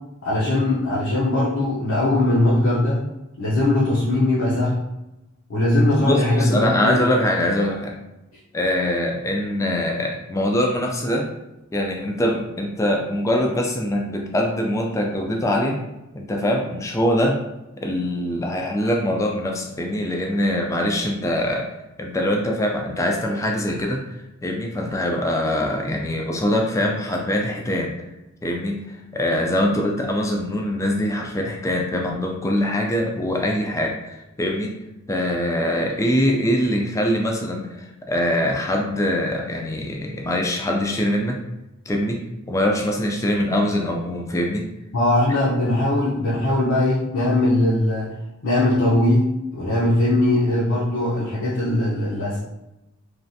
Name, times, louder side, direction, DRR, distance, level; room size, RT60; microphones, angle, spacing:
voice 1, 0.2-3.0 3.4-4.8 5.5-7.0 44.9-48.1 48.4-49.2 49.5-52.4, left 1 dB, 75° left, -7 dB, 0.7 m, -20 dB
voice 2, 6.0-7.9 8.5-11.3 11.7-15.8 16.1-17.4 17.8-21.7 22.0-24.0 24.4-27.9 28.4-34.7 35.1-41.4 41.9-42.2 42.5-44.7, left 1 dB, 15° left, 0 dB, 0.3 m, -23 dB
3.2 x 2.4 x 2.7 m, 0.95 s
head